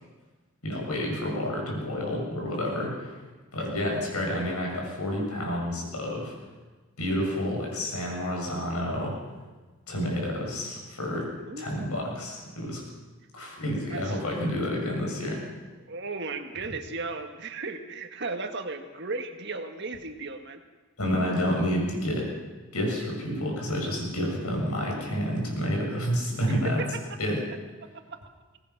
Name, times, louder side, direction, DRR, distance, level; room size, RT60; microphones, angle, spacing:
voice 1, 0.6-3.1 3.5-6.3 7.0-9.2 9.9-11.3 11.6-12.8 13.3-15.4 21.0-22.3 22.7-26.8 27.2-27.4, equal, 90° left, 0 dB, 7.3 m, -29 dB
voice 2, 15.9-20.6 26.5-26.6 28.1-28.2, right 3 dB, 50° right, 6 dB, 1.8 m, -35 dB
22.5 x 19.0 x 6.1 m, 1.3 s
head